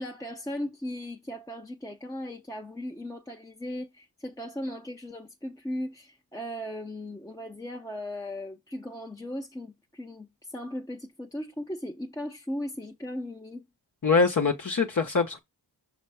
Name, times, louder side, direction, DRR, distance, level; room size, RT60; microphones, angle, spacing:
voice 1, 0.0-13.7, left 1 dB, 10° left, 0.9 m, -37 dB
voice 2, 14.0-15.4, left 4 dB, 50° left, 1.2 m, -23 dB
5.9 x 3.9 x 4.8 m
cardioid pair, 65°, 40 cm